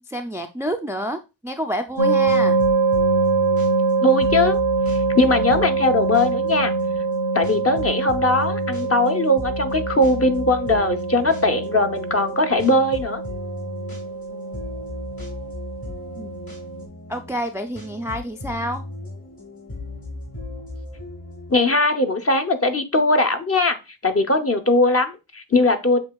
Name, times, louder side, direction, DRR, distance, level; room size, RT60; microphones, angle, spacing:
voice 1, 0.0-2.6 16.2-16.3 17.1-18.8, equal, 5° right, 6 dB, 0.3 m, -28 dB
sound 1, 1.9-21.5, left 2 dB, 50° left, 2.6 m, -37 dB
sound 2, 2.0-16.9, right 4 dB, 85° right, 0.6 m, -24 dB
voice 2, 4.0-4.6 5.1-6.7 7.3-13.2 21.5-23.8 24.0-26.0, left 2 dB, 30° left, 6 dB, 0.7 m, -20 dB
7.0 x 2.9 x 2.3 m, 0.28 s
cardioid pair, 40°, 46 cm